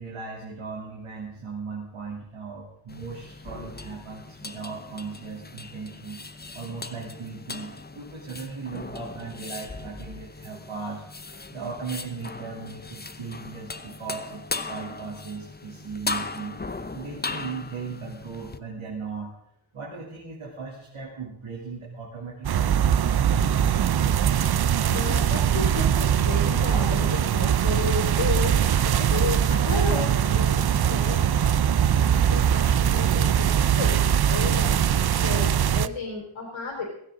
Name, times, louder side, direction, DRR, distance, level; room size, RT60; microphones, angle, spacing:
voice 1, 0.0-6.2 6.5-11.0 11.5-16.6 16.9-19.3 19.7-22.9, right 4 dB, 85° right, -3 dB, 3.1 m, -37 dB
sound 1, 2.9-18.6, left 3 dB, 20° left, 0.7 m, -38 dB
sound 2, 22.4-35.9, right 9 dB, 50° right, 0.5 m, -22 dB
voice 2, 24.9-28.6 28.8-31.6 32.0-36.8, left 4 dB, 80° left, -2 dB, 3.6 m, -33 dB
16.5 x 16.0 x 3.8 m, 0.74 s
wide cardioid pair, 125°, 49 cm